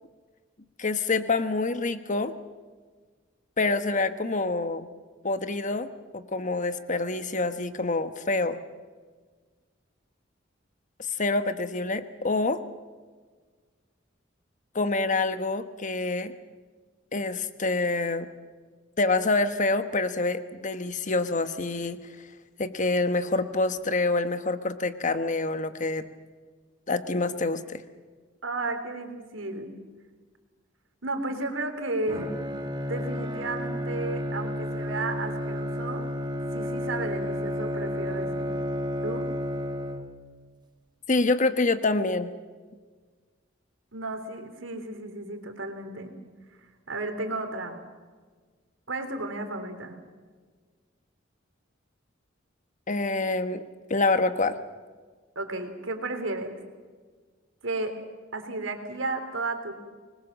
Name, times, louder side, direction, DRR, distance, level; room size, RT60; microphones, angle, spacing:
voice 1, 0.8-2.3 3.6-4.9 5.2-5.9 6.1-8.6 11.2-12.6 14.7-16.3 17.1-18.3 19.0-22.1 22.6-26.1 26.9-27.8 41.1-42.3 52.9-53.6 53.9-54.6, left 3 dB, 40° left, 11 dB, 1.2 m, -26 dB
voice 2, 28.4-29.7 31.0-32.3 32.8-36.1 36.5-38.5 39.0-39.3 43.9-46.2 46.9-47.8 48.9-50.0 55.3-56.5 57.6-58.0 58.3-59.7, right 2 dB, 80° right, 6 dB, 3.3 m, -33 dB
Bowed string instrument, 32.1-40.4, equal, 25° right, 2.0 m, -31 dB
25.0 x 21.0 x 7.4 m, 1.5 s
head